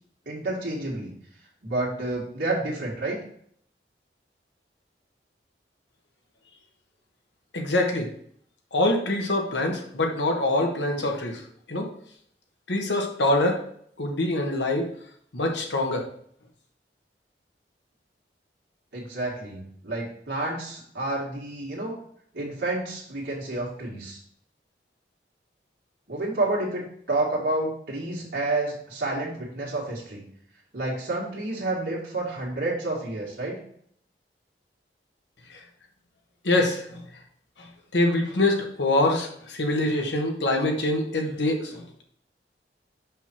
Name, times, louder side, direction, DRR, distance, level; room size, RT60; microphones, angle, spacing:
voice 1, 0.3-1.1 1.6-3.2 18.9-21.9 22.3-24.2 26.1-30.3 30.7-33.6, right 2 dB, 80° right, -5 dB, 2.0 m, -29 dB
voice 2, 7.5-8.1 8.7-11.4 11.7-11.9 12.7-13.6 14.0-14.9 15.3-16.0 36.4-37.0 37.9-42.0, left 2 dB, 90° left, 2 dB, 1.3 m, -24 dB
5.8 x 5.5 x 4.4 m, 0.64 s
head